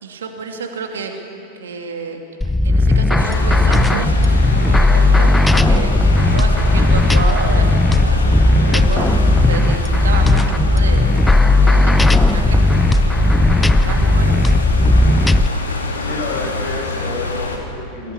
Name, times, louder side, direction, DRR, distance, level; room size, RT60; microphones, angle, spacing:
voice 1, 0.0-1.1 1.6-5.9 6.2-9.2 9.5-11.1 11.6-12.6 13.0-14.4, right 5 dB, 65° right, 3 dB, 2.6 m, -30 dB
sound 1, 2.4-15.5, left 2 dB, 5° left, 0.6 m, -14 dB
sound 2, 3.1-17.6, left 3 dB, 75° left, 2.9 m, -26 dB
voice 2, 16.0-18.1, left 2 dB, 45° left, 1 dB, 6.2 m, -29 dB
21.5 x 17.5 x 9.7 m, 2.9 s
figure-of-eight pair, 90°, 0 cm